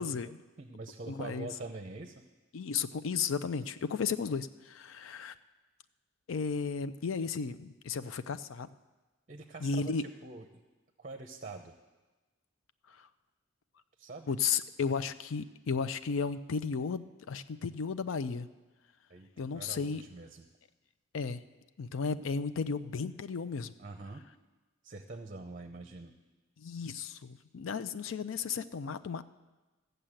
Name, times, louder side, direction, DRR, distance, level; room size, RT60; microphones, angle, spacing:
voice 1, 0.0-0.4 1.1-1.5 2.5-5.3 6.3-8.7 9.6-10.0 12.9-13.1 14.3-18.5 19.4-20.0 21.1-21.4 21.8-23.7 26.6-29.2, left 5 dB, 75° left, 12 dB, 0.5 m, -34 dB
voice 2, 0.6-2.2 9.3-10.6 11.0-11.7 14.0-14.3 19.1-19.3 19.5-20.4 23.8-24.2 24.8-26.1, right 3 dB, 40° right, 7 dB, 0.7 m, -45 dB
14.0 x 6.7 x 8.8 m, 1.2 s
head